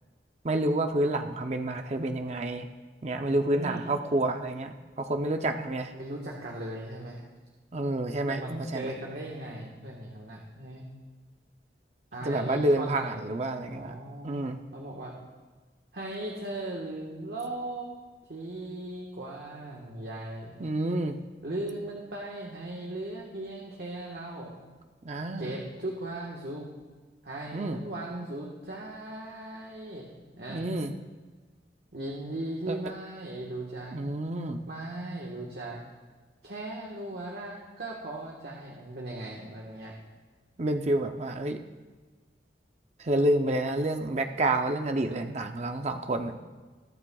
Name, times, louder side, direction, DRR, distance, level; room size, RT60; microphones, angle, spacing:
voice 1, 0.4-2.7 3.0-5.9 7.7-8.9 12.2-13.9 14.2-14.6 20.6-21.2 25.0-25.6 27.5-27.8 30.5-30.9 32.7-32.8 33.9-34.6 40.6-41.6 43.0-46.4, right 1 dB, 40° right, 5 dB, 0.6 m, -29 dB
voice 2, 3.2-3.8 5.9-7.2 8.3-10.8 12.1-13.2 13.7-15.1 15.9-17.9 18.3-20.6 21.4-24.6 25.4-26.6 27.2-30.1 30.4-30.7 31.9-34.0 34.7-35.8 36.4-39.9, right 1 dB, 70° right, -2 dB, 1.4 m, -38 dB
21.0 x 8.6 x 2.3 m, 1.3 s
head